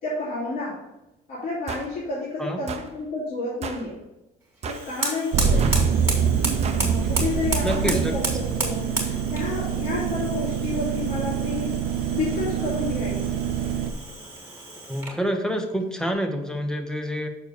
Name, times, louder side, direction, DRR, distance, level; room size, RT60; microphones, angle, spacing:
voice 1, 0.0-0.8 1.3-4.0 4.6-5.7 6.8-8.3 8.6-11.8 12.1-13.4, left 3 dB, 60° left, -9 dB, 2.6 m, -30 dB
sound 1, 1.7-1.9 2.7-2.9 3.6-3.9 4.6-4.9 5.6-5.9 6.6-6.9 7.7-7.9, right 5 dB, 40° right, 0.7 m, -34 dB
Fire, 4.7-15.2, right 2 dB, 15° right, 2.3 m, -33 dB
sound 2, 5.3-13.9, right 7 dB, 70° right, 0.7 m, -25 dB
voice 2, 7.6-8.2 14.9-17.3, equal, 5° left, 5 dB, 0.9 m, -27 dB
6.6 x 4.5 x 5.0 m, 0.96 s
cardioid pair, 110°, 17 cm